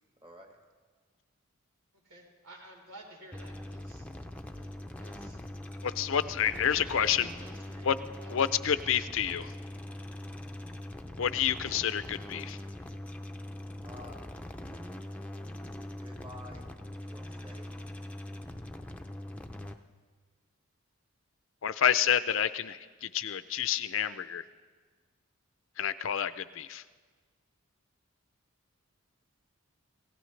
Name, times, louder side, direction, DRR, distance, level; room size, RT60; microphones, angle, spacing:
voice 1, 0.2-0.6 13.8-14.2 15.9-16.7 16.9-17.7, left 1 dB, 25° right, 3 dB, 1.2 m, -50 dB
voice 2, 2.0-4.1 4.4-4.7 5.0-5.4 5.7-7.9 8.2-8.6 8.9-9.2 9.5-9.6, right 2 dB, 85° right, -1 dB, 4.0 m, -54 dB
sound 1, 3.3-19.7, left 1 dB, 5° left, 0.5 m, -42 dB
voice 3, 5.8-7.3 7.8-8.0 8.3-9.5 11.2-12.6 21.6-24.4 25.8-26.8, left 9 dB, 60° left, 14 dB, 0.5 m, -29 dB
27.0 x 16.5 x 3.3 m, 1.5 s
head